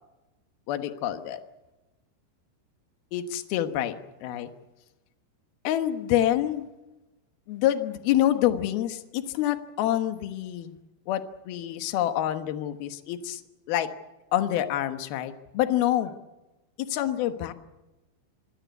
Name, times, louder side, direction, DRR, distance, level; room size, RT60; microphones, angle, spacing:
voice 1, 0.7-1.4 3.1-3.9 4.2-4.5 5.6-6.7 7.5-10.7 11.1-13.4 13.7-13.9 14.3-16.1 16.9-17.5, left 12 dB, 65° left, 9 dB, 2.8 m, -27 dB
25.5 x 18.5 x 8.3 m, 1.1 s
omnidirectional pair, 5.4 m